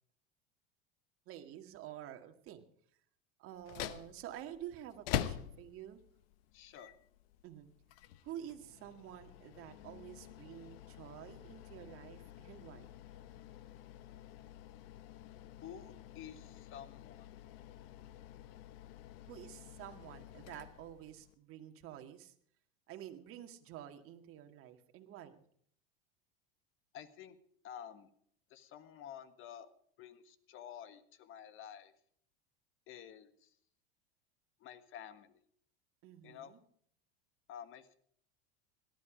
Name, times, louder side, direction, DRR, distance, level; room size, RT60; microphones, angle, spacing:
voice 1, 1.3-2.6 3.4-6.0 7.4-7.7 8.2-12.9 19.3-22.3 22.9-25.4 36.0-36.6, right 11 dB, 45° right, 6 dB, 2.0 m, -49 dB
sound 1, 3.5-21.3, left 12 dB, 75° left, 1.1 m, -47 dB
voice 2, 6.5-6.9 15.6-17.3 26.9-27.4 27.6-28.1 28.5-29.7 30.0-31.9 32.9-33.5 34.6-35.4 36.2-36.5 37.5-38.0, left 9 dB, 45° left, 12 dB, 1.5 m, -51 dB
18.0 x 12.5 x 5.1 m, 0.64 s
supercardioid pair, 115°, 29 cm